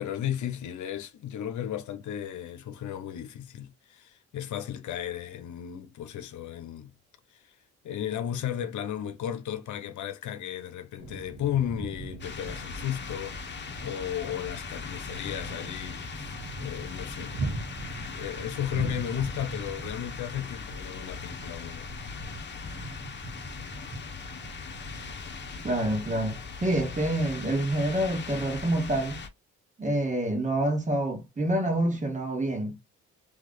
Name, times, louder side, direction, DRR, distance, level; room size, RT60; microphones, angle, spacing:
voice 1, 0.0-6.9 7.3-7.5 7.8-17.3 17.9-21.9, left 10 dB, 75° left, 0.9 m, -34 dB
sound 1, 11.0-28.9, right 2 dB, 50° right, 1.5 m, -42 dB
sound 2, 12.2-29.3, left 5 dB, 35° left, 1.1 m, -40 dB
voice 2, 25.6-29.2 29.8-32.8, right 1 dB, 25° right, 2.2 m, -27 dB
3.5 x 3.2 x 3.9 m
cardioid pair, 90°, 30 cm